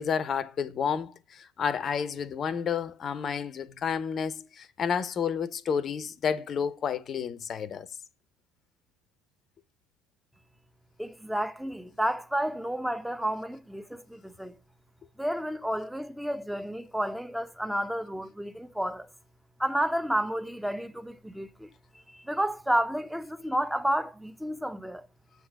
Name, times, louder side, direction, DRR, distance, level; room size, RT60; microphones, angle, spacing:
voice 1, 0.0-7.9, left 7 dB, 40° left, 0.8 m, -30 dB
voice 2, 11.0-14.6 15.2-19.1 19.6-21.7 22.1-25.1, right 1 dB, ahead, 0.9 m, -31 dB
7.8 x 3.9 x 6.4 m
figure-of-eight pair, 60°, 0 cm